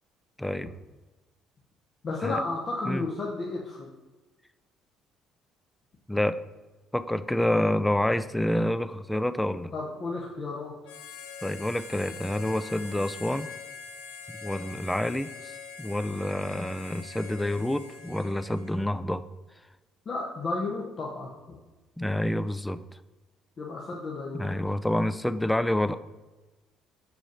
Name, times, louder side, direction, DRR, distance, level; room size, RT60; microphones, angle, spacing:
voice 1, 0.4-0.7 2.2-2.4 2.9-3.0 6.1-6.4 6.9-9.7 11.4-13.5 14.3-15.5 15.8-19.2 22.0-22.8 24.3-26.0, left 1 dB, 5° left, 13 dB, 0.4 m, -28 dB
voice 2, 2.0-3.9 9.7-10.7 20.0-21.6 23.6-24.6, left 3 dB, 45° left, -3 dB, 1.2 m, -33 dB
Harmonica, 10.8-18.9, left 5 dB, 75° left, 0.7 m, -44 dB
6.2 x 4.8 x 5.4 m, 1.2 s
hypercardioid pair, 55°, 0 cm